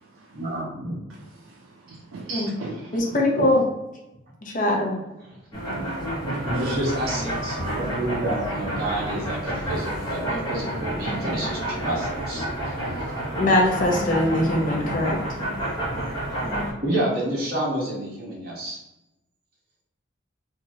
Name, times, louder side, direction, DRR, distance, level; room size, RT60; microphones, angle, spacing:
voice 1, 0.3-1.0 1.9-2.0 2.9-3.0 3.3-3.5 6.4-12.4 16.8-18.8, right 1 dB, 50° right, 0.9 m, -29 dB
voice 2, 1.4-3.1 5.7-5.9 6.6-6.8 18.7-18.8, right 3 dB, 80° right, 0.4 m, -39 dB
voice 3, 2.9-3.6 4.4-5.0 13.4-15.2, left 1 dB, 40° left, 0.6 m, -21 dB
sound 1, 5.5-16.7, right 1 dB, 20° left, 0.9 m, -29 dB
3.1 x 2.3 x 2.7 m
head